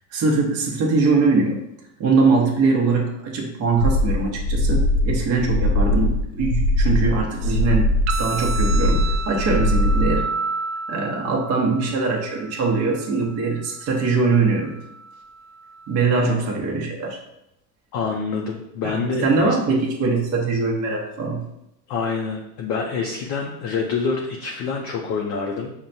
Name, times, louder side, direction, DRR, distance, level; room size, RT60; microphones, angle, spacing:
voice 1, 0.1-1.6 2.0-7.9 8.2-10.3 10.9-14.8 15.9-17.2 18.8-19.0 19.2-21.4, right 4 dB, 30° right, -1 dB, 0.8 m, -22 dB
sound 1, 3.8-10.2, left 1 dB, 75° left, 0.6 m, -21 dB
sound 2, 8.1-16.1, right 4 dB, 65° right, 0.5 m, -32 dB
voice 2, 17.9-19.6 21.9-25.7, left 5 dB, 40° left, 0 dB, 0.5 m, -26 dB
5.6 x 2.2 x 2.6 m, 0.83 s
supercardioid pair, 120°, 47 cm